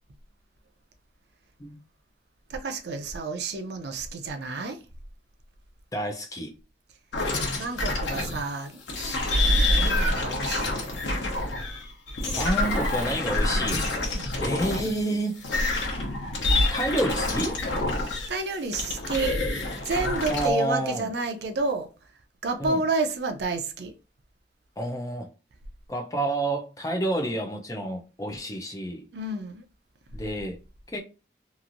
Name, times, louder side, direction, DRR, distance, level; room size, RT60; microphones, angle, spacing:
voice 1, 2.5-4.8 7.5-8.8 9.7-10.9 14.1-14.4 18.3-19.4 19.8-21.9 22.4-23.9 29.1-29.6, right 3 dB, 70° right, 0.5 m, -30 dB
voice 2, 5.9-6.5 12.4-13.9 14.4-15.4 16.7-17.6 20.3-21.1 22.6-22.8 24.8-25.3 25.9-29.1 30.1-30.6 30.9-31.0, right 1 dB, 20° left, 0.5 m, -29 dB
sound 1, 7.1-8.5 8.9-15.0 15.4-18.4 18.7-20.5, left 1 dB, 85° left, 0.8 m, -27 dB
3.0 x 2.5 x 2.5 m
head